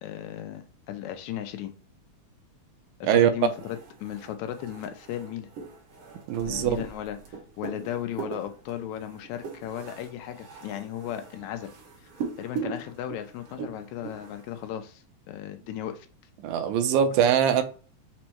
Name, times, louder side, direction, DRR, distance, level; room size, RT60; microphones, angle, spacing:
voice 1, 0.0-1.7 3.0-5.5 6.5-11.7 12.4-16.1, left 11 dB, 85° left, 1.9 m, -36 dB
sound 1, 3.4-14.7, right 5 dB, 60° right, 1.4 m, -40 dB
voice 2, 6.3-6.8 16.4-17.6, right 9 dB, 85° right, 2.0 m, -22 dB
5.3 x 2.1 x 4.3 m
omnidirectional pair, 3.3 m